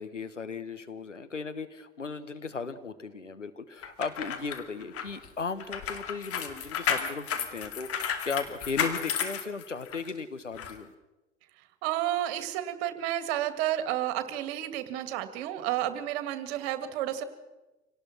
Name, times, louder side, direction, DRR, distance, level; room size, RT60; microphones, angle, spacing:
voice 1, 0.0-10.9, left 5 dB, 90° left, 11 dB, 1.2 m, -36 dB
sound 1, 3.8-10.1 10.6-10.7, left 7 dB, 40° left, 2.5 m, -33 dB
voice 2, 11.8-17.2, right 12 dB, 55° right, 11 dB, 2.1 m, -31 dB
26.0 x 18.5 x 6.1 m, 1.1 s
figure-of-eight pair, 70°, 36 cm